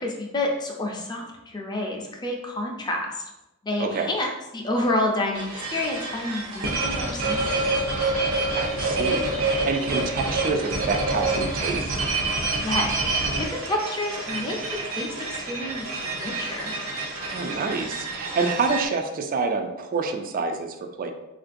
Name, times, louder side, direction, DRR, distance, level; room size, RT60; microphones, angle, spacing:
voice 1, 0.0-3.2 3.6-7.6 12.6-14.6 14.8-16.7, left 1 dB, 20° left, 0 dB, 0.5 m, -29 dB
voice 2, 3.8-4.1 8.5-12.0 17.3-21.1, right 4 dB, 40° right, 5 dB, 0.3 m, -27 dB
sound 1, 5.3-18.8, right 2 dB, 85° right, 0.7 m, -27 dB
3.7 x 2.5 x 2.5 m, 0.95 s
head